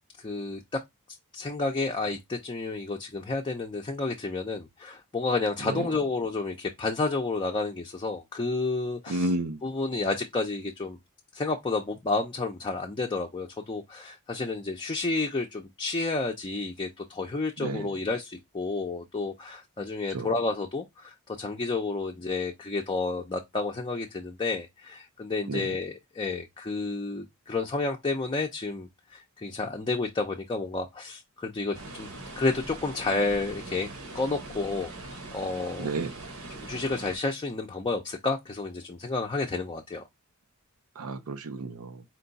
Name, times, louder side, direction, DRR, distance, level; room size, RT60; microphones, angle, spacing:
voice 1, 0.2-0.8 1.3-9.3 9.6-11.0 11.3-32.1 32.4-33.9 34.1-35.9 36.5-40.0, left 3 dB, 20° left, 0.5 m, -31 dB
voice 2, 9.1-9.6 17.6-17.9 20.1-20.3 25.5-25.7 35.8-36.1 41.0-42.0, right 2 dB, 80° right, 0.6 m, -31 dB
sound 1, 31.7-37.2, right 2 dB, 65° right, 1.1 m, -42 dB
4.5 x 2.3 x 3.9 m
head